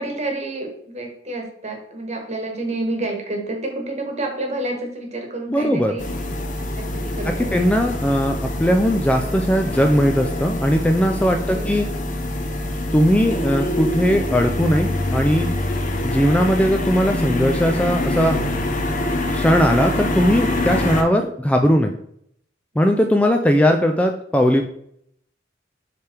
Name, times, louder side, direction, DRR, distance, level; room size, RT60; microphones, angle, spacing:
voice 1, 0.0-6.1 6.5-7.8 11.4-11.7, right 2 dB, 35° right, 3 dB, 1.3 m, -29 dB
voice 2, 5.5-6.0 7.5-11.9 12.9-15.5 16.0-18.4 19.3-22.0 22.8-24.7, equal, 5° left, 4 dB, 0.4 m, -19 dB
sound 1, 6.0-21.0, left 1 dB, 45° left, 0.8 m, -25 dB
6.9 x 3.4 x 4.4 m, 0.69 s
head